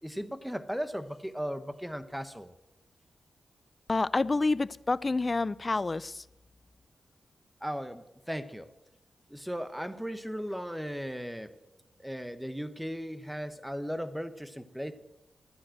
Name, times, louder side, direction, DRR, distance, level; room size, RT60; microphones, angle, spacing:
voice 1, 0.0-2.5 7.6-8.7 9.3-11.6 12.0-14.9, equal, 5° right, 11 dB, 1.1 m, -37 dB
voice 2, 3.9-6.2, left 3 dB, 30° left, 19 dB, 0.4 m, -28 dB
13.5 x 9.4 x 7.8 m, 0.90 s
cardioid pair, 80°, 0 cm